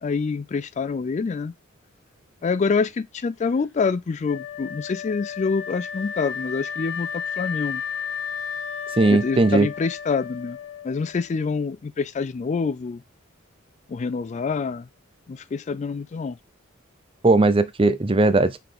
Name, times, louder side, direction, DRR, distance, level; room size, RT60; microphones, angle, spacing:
voice 1, 0.0-1.5 2.4-7.8 9.1-10.6 10.8-13.0 13.9-14.9 15.3-16.4, left 5 dB, 35° left, 0.3 m, -26 dB
Wind instrument woodwind instrument, 4.2-11.3, left 7 dB, 80° left, 2.4 m, -33 dB
voice 2, 9.0-9.7 17.2-18.6, right 2 dB, 25° right, 0.6 m, -18 dB
5.8 x 4.0 x 5.0 m
head